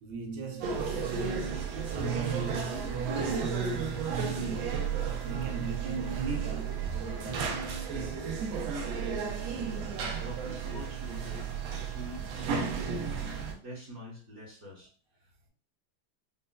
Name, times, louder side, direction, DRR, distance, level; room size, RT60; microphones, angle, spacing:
voice 1, 0.0-4.9 5.1-8.4, right 5 dB, 70° right, 1.0 m, -37 dB
sound 1, 0.6-13.5, right 5 dB, 85° right, 1.5 m, -33 dB
voice 2, 10.2-13.1 13.6-14.9, equal, 45° right, 1.0 m, -45 dB
5.3 x 2.0 x 2.2 m
omnidirectional pair, 2.2 m